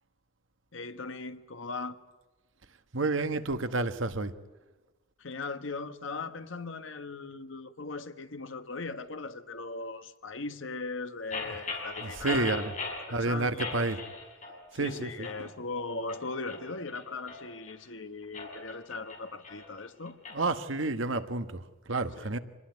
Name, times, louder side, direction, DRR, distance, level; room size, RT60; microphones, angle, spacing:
voice 1, 0.7-2.0 5.2-12.5 13.0-13.8 14.7-20.2 22.2-22.3, left 3 dB, 75° left, 1.3 m, -39 dB
voice 2, 2.9-4.3 11.4-11.5 12.0-12.8 13.1-14.0 14.7-15.5 20.3-22.4, right 3 dB, 75° right, 1.3 m, -30 dB
sound 1, 11.3-13.1 13.6-14.6 14.8-15.4 15.9-17.8 18.2-20.4, left 3 dB, 35° left, 4.8 m, -39 dB
25.5 x 20.0 x 9.5 m
head